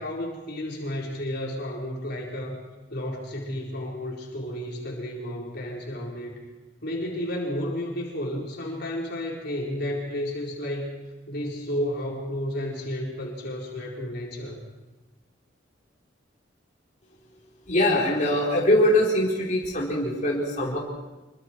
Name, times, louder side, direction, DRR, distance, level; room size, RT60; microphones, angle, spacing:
voice 1, 0.0-2.6 2.9-6.4 6.8-10.9 11.3-14.6, left 1 dB, 60° left, -2 dB, 4.6 m, -32 dB
voice 2, 17.7-20.8, left 1 dB, 45° left, -5 dB, 4.4 m, -22 dB
26.5 x 23.5 x 4.7 m, 1.1 s
head